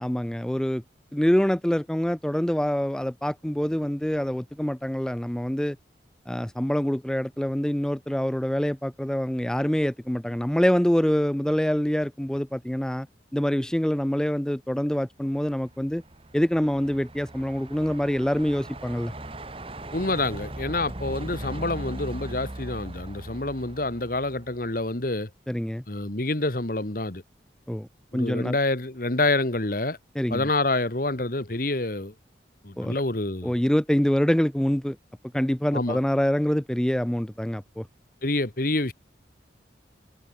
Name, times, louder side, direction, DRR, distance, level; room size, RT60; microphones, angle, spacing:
voice 1, 0.0-0.8 1.1-5.8 6.3-13.1 13.3-16.0 16.3-19.1 25.5-25.8 27.7-27.9 28.1-28.6 30.2-30.5 32.8-33.0 33.4-35.0 35.3-37.9, equal, 5° left, 0.3 m, -25 dB
Truck, 15.4-24.8, right 1 dB, 30° right, 1.7 m, -39 dB
voice 2, 19.9-25.3 25.9-27.2 28.1-30.0 30.3-32.1 32.6-33.6 35.7-36.0 38.2-38.9, left 2 dB, 50° left, 1.8 m, -27 dB
head